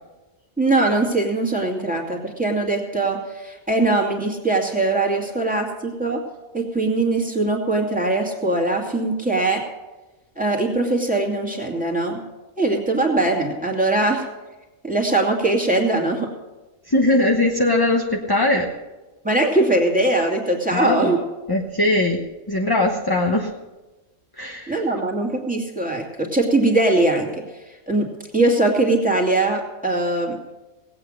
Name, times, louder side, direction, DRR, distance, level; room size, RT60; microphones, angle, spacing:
voice 1, 0.6-6.2 6.5-9.6 10.4-12.2 12.6-14.3 14.8-16.3 19.2-21.2 24.7-27.3 27.9-28.1 28.3-30.4, right 2 dB, 5° right, -1 dB, 2.3 m, -21 dB
voice 2, 16.9-18.7 20.7-23.5 24.4-25.0, left 2 dB, 20° left, 1 dB, 0.9 m, -21 dB
18.0 x 8.7 x 6.5 m, 1.1 s
omnidirectional pair, 1.5 m